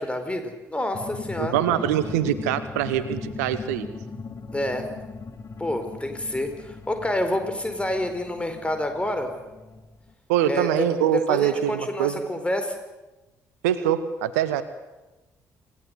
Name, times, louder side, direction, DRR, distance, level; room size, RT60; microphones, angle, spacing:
voice 1, 0.0-1.6 4.5-4.9 5.6-9.3 10.4-12.7, left 1 dB, 15° left, 7 dB, 4.7 m, -28 dB
sound 1, 0.9-10.1, left 4 dB, 35° left, 2.6 m, -39 dB
voice 2, 1.4-3.9 10.3-12.2 13.6-14.6, right 11 dB, 75° right, 13 dB, 1.1 m, -24 dB
27.5 x 17.0 x 8.0 m, 1.1 s
figure-of-eight pair, 45°, 9 cm